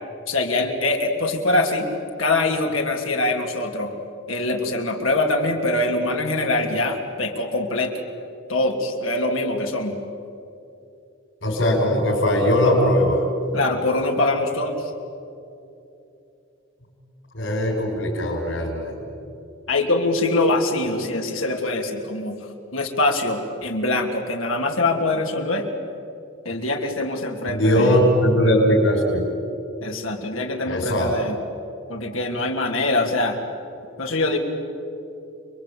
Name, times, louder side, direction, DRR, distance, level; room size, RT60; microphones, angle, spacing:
voice 1, 0.3-1.9 2.2-3.9 4.3-7.9 8.5-10.0 13.5-14.9 19.7-22.4 22.7-25.7 26.4-28.0 29.8-31.4 31.9-33.4 34.0-34.4, left 2 dB, 85° left, 2 dB, 3.3 m, -23 dB
voice 2, 11.4-13.2 17.3-19.0 27.5-29.3 30.7-31.1, equal, 65° left, -4 dB, 5.2 m, -19 dB
30.0 x 22.5 x 8.8 m, 2.8 s
head